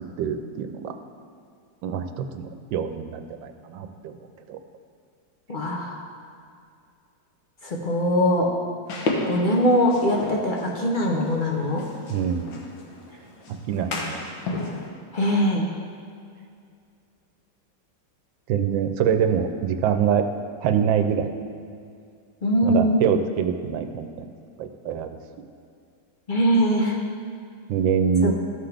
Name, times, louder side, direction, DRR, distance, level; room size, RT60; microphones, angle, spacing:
voice 1, 0.2-0.9 1.8-4.2 4.5-4.6 12.1-12.6 13.5-14.2 18.5-20.2 20.6-21.3 22.6-24.3 24.6-25.2 27.7-28.3, right 7 dB, 85° right, 7 dB, 1.3 m, -25 dB
voice 2, 5.5-6.0 7.6-8.5 9.2-11.8 15.1-15.7 22.4-23.0 26.3-27.0 28.2-28.3, equal, 55° left, -1 dB, 0.5 m, -21 dB
sound 1, 8.9-14.9, left 2 dB, 85° left, 1.7 m, -33 dB
14.0 x 5.8 x 3.4 m, 2.3 s
omnidirectional pair, 2.0 m